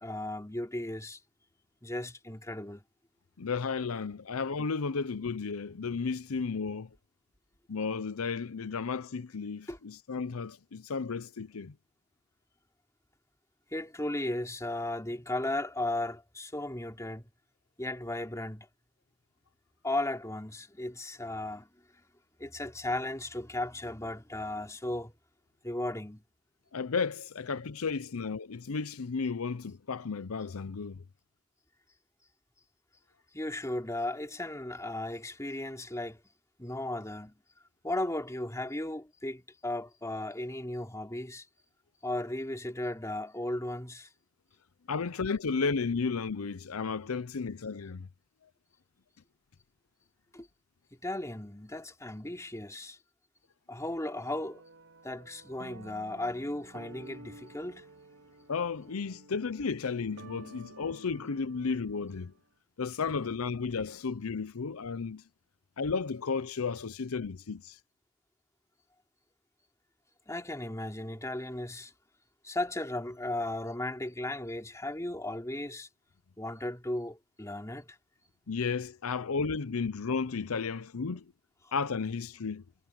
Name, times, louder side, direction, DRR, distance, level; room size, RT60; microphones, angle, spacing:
voice 1, 0.0-1.2 1.8-2.8 9.7-9.8 13.7-17.3 17.8-18.7 19.8-21.7 22.4-25.1 25.6-26.2 33.3-36.2 36.6-37.3 37.8-41.4 42.0-44.1 50.3-50.5 51.0-53.0 53.7-54.6 55.0-57.9 70.3-71.9 72.4-75.9 76.4-78.0, left 1 dB, 15° left, 3.2 m, -36 dB
voice 2, 3.4-6.9 7.7-11.7 26.7-31.0 44.9-48.1 58.5-62.3 62.8-65.2 65.8-67.8 78.5-81.2 81.7-82.6, left 5 dB, 85° left, 0.7 m, -33 dB
sound 1, 54.1-62.4, right 2 dB, 85° right, 2.9 m, -52 dB
head